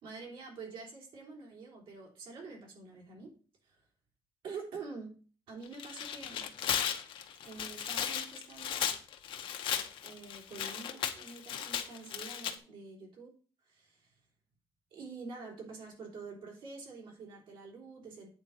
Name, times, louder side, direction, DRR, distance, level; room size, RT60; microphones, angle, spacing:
voice 1, 0.0-3.3 3.6-3.8 4.4-5.1 5.5-6.5 7.4-8.9 10.0-13.3 13.6-14.1 14.9-18.3, right 4 dB, 80° right, 0 dB, 3.4 m, -47 dB
Tearing, 5.7-12.5, left 9 dB, 80° left, 1.0 m, -36 dB
8.9 x 4.0 x 6.4 m, 0.39 s
cardioid pair, 175°, 9 cm